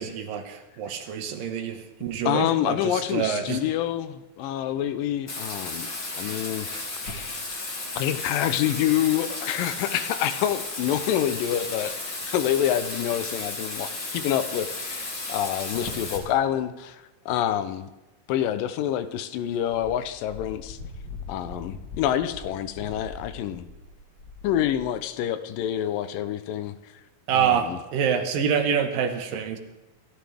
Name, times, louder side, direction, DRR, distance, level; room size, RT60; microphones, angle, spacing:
voice 1, 0.0-3.6 27.3-29.6, right 7 dB, 80° right, 6 dB, 3.0 m, -26 dB
voice 2, 2.3-5.9 6.2-6.7 7.0-7.4 8.0-11.9 12.2-17.9 18.3-20.8 21.3-23.7 24.4-26.7 27.3-27.8, left 11 dB, 80° left, 12 dB, 2.4 m, -27 dB
Bathtub (filling or washing), 5.3-16.2, left 2 dB, 35° left, 2.9 m, -34 dB
Wind, 19.7-25.0, left 4 dB, 55° left, 1.1 m, -41 dB
27.5 x 13.0 x 3.5 m, 1.1 s
omnidirectional pair, 3.9 m